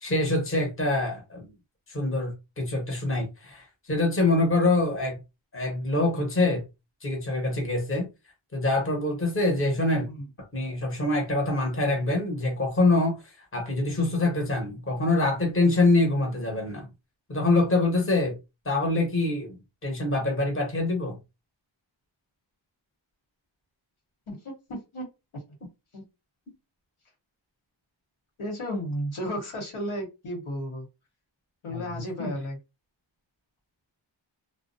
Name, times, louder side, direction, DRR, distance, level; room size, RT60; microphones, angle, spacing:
voice 1, 0.0-1.5 1.9-5.2 5.5-6.6 7.0-8.1 8.5-10.1 10.5-16.9 17.3-18.4 18.6-21.2 31.7-32.3, left 2 dB, 25° left, 1.0 m, -25 dB
voice 2, 24.3-25.1 25.3-25.4 25.9-26.0 28.4-30.9 31.6-32.6, equal, 80° left, 1.1 m, -33 dB
2.4 x 2.1 x 2.6 m
wide cardioid pair, 70°, 48 cm